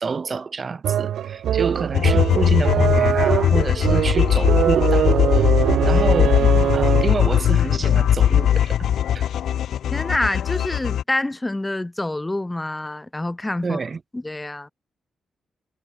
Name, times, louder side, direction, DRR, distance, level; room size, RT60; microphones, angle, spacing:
voice 1, 0.0-5.3 5.8-6.4 6.7-8.9 9.1-9.3 13.6-14.0, right 5 dB, 30° right, 2.6 m, -28 dB
sound 1, 0.8-7.3, right 10 dB, 70° right, 0.9 m, -22 dB
sound 2, 1.9-11.0, left 10 dB, 70° left, 0.8 m, -19 dB
voice 2, 6.2-6.7 9.9-13.8 14.1-14.7, left 2 dB, 10° left, 1.8 m, -27 dB
wide cardioid pair, 160°, 0 cm